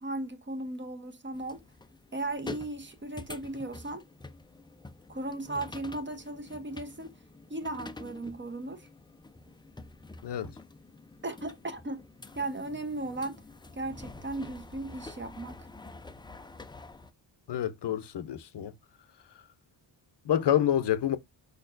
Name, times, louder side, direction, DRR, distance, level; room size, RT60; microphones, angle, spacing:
voice 1, 0.0-1.6 2.1-4.1 5.1-7.1 7.5-8.9 11.2-12.1 12.3-13.4 13.7-15.7 20.3-20.4, right 2 dB, 25° right, 0.8 m, -36 dB
sound 1, 1.3-17.1, left 2 dB, 10° left, 0.4 m, -47 dB
voice 2, 17.5-18.7 20.2-21.2, left 10 dB, 60° left, 0.7 m, -27 dB
5.0 x 4.3 x 2.5 m
wide cardioid pair, 130°, 46 cm